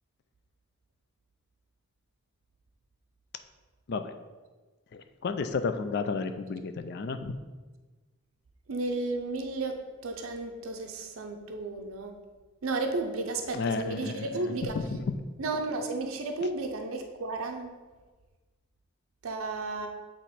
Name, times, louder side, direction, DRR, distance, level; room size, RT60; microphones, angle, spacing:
voice 1, 4.9-7.4 13.5-14.3 14.8-15.1, left 4 dB, 50° left, 9 dB, 0.4 m, -32 dB
voice 2, 8.7-12.2 12.6-14.8 15.4-17.8 19.2-19.9, right 3 dB, 80° right, 4 dB, 0.5 m, -33 dB
7.7 x 3.0 x 4.1 m, 1.3 s
head